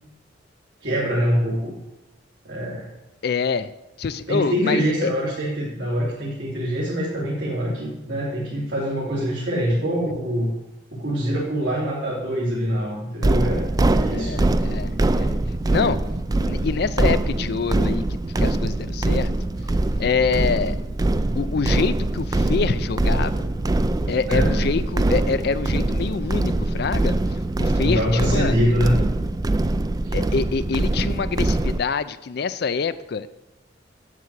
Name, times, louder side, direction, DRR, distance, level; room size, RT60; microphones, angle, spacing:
voice 1, 0.8-1.8 2.4-2.9 4.3-10.6 10.9-14.5 24.3-24.5 27.8-29.0 30.0-30.1, equal, 75° right, -7 dB, 2.6 m, -24 dB
voice 2, 3.2-3.7 4.0-5.1 14.1-16.0 16.4-18.1 18.4-19.3 20.0-20.8 21.4-23.5 24.1-27.2 27.6-28.6 30.1-33.3, left 5 dB, 60° left, 13 dB, 0.4 m, -26 dB
sound 1, 13.2-31.8, right 2 dB, 20° right, 0.4 m, -23 dB
8.0 x 7.5 x 8.0 m, 0.96 s
head